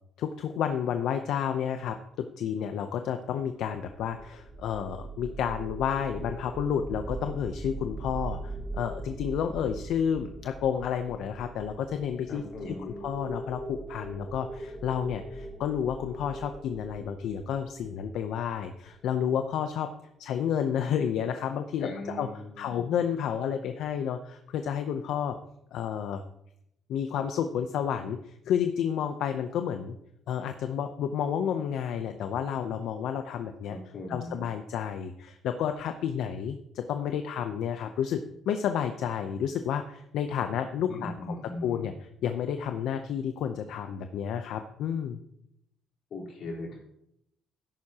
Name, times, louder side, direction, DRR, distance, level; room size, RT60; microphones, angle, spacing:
voice 1, 0.2-19.9 20.2-22.3 22.6-25.4 25.7-26.2 26.9-30.0 30.3-33.8 34.1-41.9 42.2-45.2, left 8 dB, 75° left, 7 dB, 0.6 m, -31 dB
sound 1, 3.8-18.9, right 2 dB, 5° right, 1.2 m, -41 dB
voice 2, 12.3-13.0 21.8-22.9 33.7-34.4 40.9-41.9 46.1-46.8, left 2 dB, 55° left, -4 dB, 3.8 m, -39 dB
13.5 x 11.0 x 2.9 m, 0.79 s
cardioid pair, 135°, 0 cm